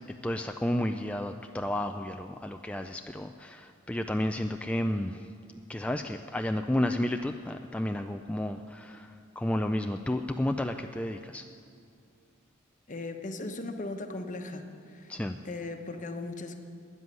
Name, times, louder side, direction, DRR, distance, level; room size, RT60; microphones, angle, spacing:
voice 1, 0.2-5.3 5.7-11.4 15.1-15.4, left 1 dB, 5° left, 5 dB, 0.3 m, -31 dB
voice 2, 12.9-15.1 15.4-16.6, left 2 dB, 40° left, 6 dB, 1.1 m, -38 dB
13.0 x 9.6 x 9.4 m, 2.4 s
head